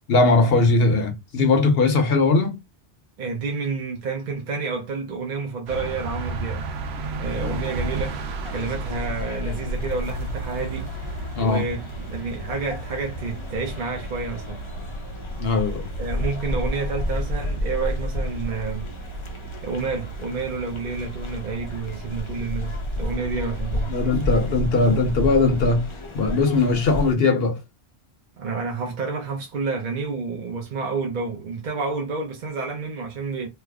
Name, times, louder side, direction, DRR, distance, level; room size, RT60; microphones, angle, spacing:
voice 1, 0.1-2.6 7.3-7.6 11.4-11.6 15.4-15.9 23.9-25.9 26.1-27.6, left 3 dB, 65° left, 1.0 m, -20 dB
voice 2, 3.2-6.6 7.2-10.9 11.4-14.6 16.0-18.9 19.3-24.0 28.4-33.5, right 4 dB, 55° right, 0.7 m, -29 dB
sound 1, 5.7-25.4, right 2 dB, 80° right, 0.9 m, -34 dB
sound 2, 8.4-27.1, left 1 dB, 35° left, 0.5 m, -32 dB
3.2 x 2.0 x 3.5 m
omnidirectional pair, 1.1 m